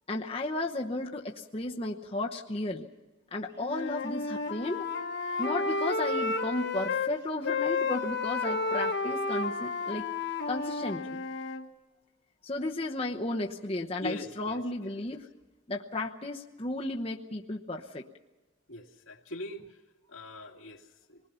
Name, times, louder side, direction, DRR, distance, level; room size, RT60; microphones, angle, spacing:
voice 1, 0.1-2.9 3.3-4.9 5.4-10.1 10.5-11.2 12.4-15.3 15.7-18.0, left 2 dB, 30° left, 0 dB, 1.0 m, -34 dB
Wind instrument woodwind instrument, 3.6-7.1 7.4-11.6, left 3 dB, 55° left, 1.4 m, -31 dB
voice 2, 14.0-14.9 18.7-19.6 20.1-21.2, left 2 dB, 80° left, 1 dB, 2.3 m, -42 dB
27.0 x 20.0 x 5.7 m, 1.2 s
head